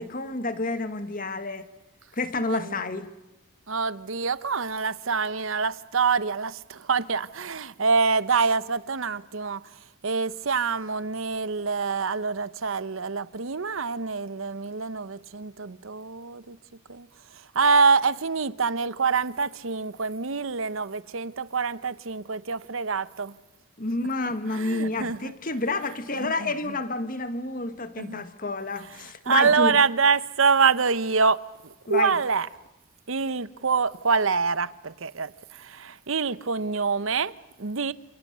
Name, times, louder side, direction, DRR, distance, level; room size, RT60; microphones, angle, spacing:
voice 1, 0.0-1.7 2.1-3.1 23.8-29.8 31.9-32.2, left 2 dB, 40° left, 1.8 m, -29 dB
voice 2, 2.5-2.8 3.7-9.6 10.0-16.6 16.9-17.1 17.5-23.3 24.5-25.3 26.2-26.5 28.0-28.3 29.3-31.4 31.9-32.5 33.1-37.9, right 5 dB, 65° right, 0.9 m, -25 dB
29.0 x 28.0 x 6.9 m
head